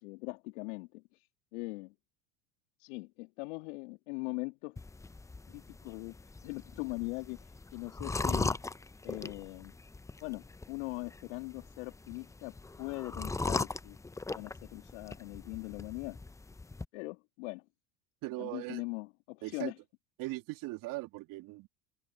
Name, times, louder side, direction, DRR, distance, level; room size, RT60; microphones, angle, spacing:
voice 1, 0.0-1.9 2.8-4.8 5.5-8.6 9.0-9.7 10.2-14.0 14.3-16.2 16.9-17.6 18.4-19.8, left 27 dB, 65° left, 2.2 m, -41 dB
sound 1, 4.8-16.9, left 3 dB, 10° left, 0.7 m, -39 dB
voice 2, 18.2-18.8 19.4-19.7 20.2-21.7, right 20 dB, 55° right, 3.1 m, -39 dB
hypercardioid pair, 85°, 39 cm